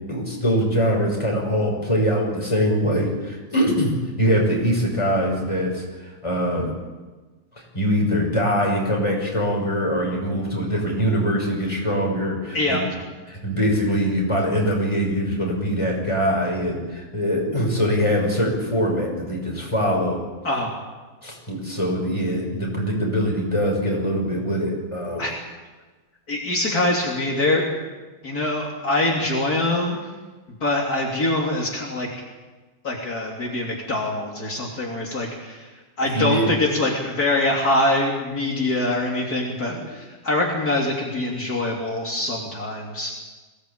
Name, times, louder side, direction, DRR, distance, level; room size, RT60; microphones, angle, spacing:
voice 1, 0.1-5.8 6.2-6.7 7.7-12.8 13.3-20.2 21.2-25.3 36.0-36.7 38.5-38.6 39.6-39.8, equal, 15° left, -1 dB, 6.2 m, -23 dB
voice 2, 26.3-27.7 28.2-30.0 30.6-32.1 32.8-35.7 36.0-43.1, left 2 dB, 60° left, -2 dB, 3.5 m, -24 dB
23.0 x 18.0 x 8.6 m, 1.3 s
omnidirectional pair, 1.9 m